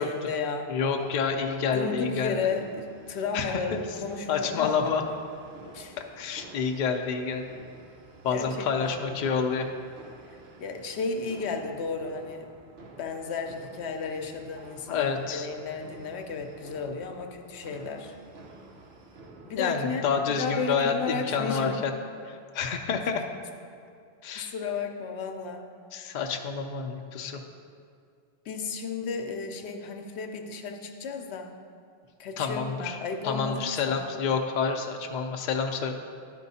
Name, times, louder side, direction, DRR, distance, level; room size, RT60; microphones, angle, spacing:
voice 1, 0.0-0.7 1.7-5.2 5.7-6.0 8.3-9.2 10.3-12.5 13.0-18.1 19.4-21.8 24.3-25.7 28.5-31.6 32.2-34.1, left 4 dB, 85° left, 5 dB, 0.9 m, -34 dB
voice 2, 0.7-2.4 3.3-3.8 4.3-5.0 6.2-7.4 8.2-9.7 14.9-15.5 19.6-21.9 22.2-23.2 24.2-24.5 25.9-27.4 32.4-33.0 33.2-35.9, left 6 dB, 55° left, 4 dB, 0.6 m, -28 dB
sound 1, 0.8-19.6, right 3 dB, 75° right, 1.0 m, -50 dB
10.5 x 4.5 x 4.1 m, 2.3 s
omnidirectional pair, 1.1 m